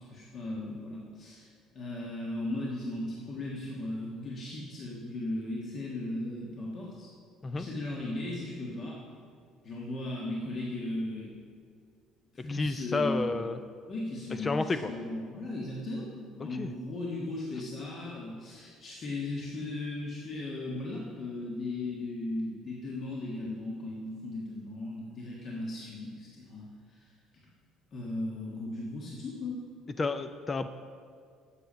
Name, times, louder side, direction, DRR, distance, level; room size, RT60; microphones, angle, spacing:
voice 1, 0.1-7.1 7.5-9.0 9.6-11.3 12.3-13.5 13.8-27.1 27.9-29.6, left 2 dB, 45° left, -4 dB, 1.4 m, -37 dB
voice 2, 12.5-13.6 14.4-14.9 16.5-16.7 30.0-30.7, left 3 dB, 25° left, 10 dB, 0.3 m, -30 dB
8.2 x 7.0 x 5.1 m, 2.1 s
cardioid pair, 110°, 0 cm